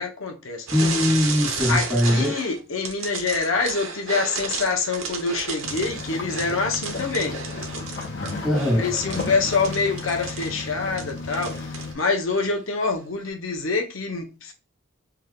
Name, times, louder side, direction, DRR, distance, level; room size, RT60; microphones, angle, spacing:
voice 1, 0.0-0.7 1.6-7.4 8.7-11.5 11.9-14.5, left 4 dB, 90° left, 0.9 m, -26 dB
voice 2, 0.7-2.3 8.4-8.8, left 1 dB, ahead, 0.9 m, -21 dB
sound 1, 0.7-2.6 2.8-11.9 12.3-12.5 13.3-13.4, right 5 dB, 90° right, 0.9 m, -33 dB
sound 2, 5.6-11.9, left 3 dB, 60° left, 0.9 m, -33 dB
3.4 x 2.4 x 3.4 m
head